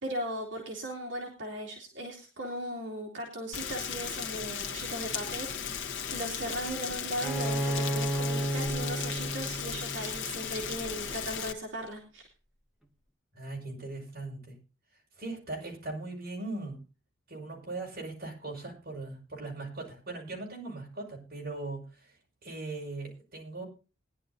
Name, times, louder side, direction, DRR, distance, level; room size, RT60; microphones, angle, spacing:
voice 1, 0.0-12.3, right 1 dB, 65° right, -1 dB, 2.8 m, -38 dB
Rain, 3.5-11.5, left 7 dB, 60° left, 1.2 m, -36 dB
Bowed string instrument, 7.2-10.8, right 1 dB, ahead, 1.4 m, -33 dB
voice 2, 13.3-14.6 15.2-16.8 17.3-22.1 22.4-23.6, right 2 dB, 50° right, -1 dB, 5.7 m, -39 dB
20.5 x 11.0 x 2.7 m, 0.33 s
head